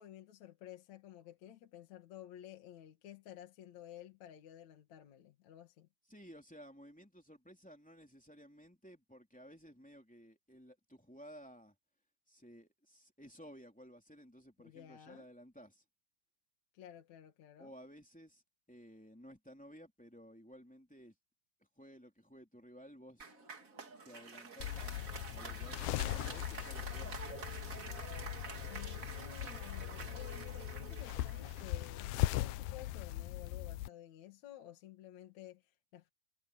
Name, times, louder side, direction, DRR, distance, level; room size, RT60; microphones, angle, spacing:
voice 1, 0.0-5.9 14.6-15.3 16.7-17.7 28.7-36.1, left 11 dB, 65° left, 2.8 m, -53 dB
voice 2, 6.1-11.7 12.3-15.8 17.6-18.4 18.7-21.1 21.8-23.4 24.0-27.3, equal, 5° left, 2.8 m, -55 dB
Applause, 23.2-32.5, right 5 dB, 35° right, 1.7 m, -48 dB
sound 1, 24.6-33.9, left 15 dB, 85° left, 2.3 m, -39 dB
omnidirectional pair, 3.7 m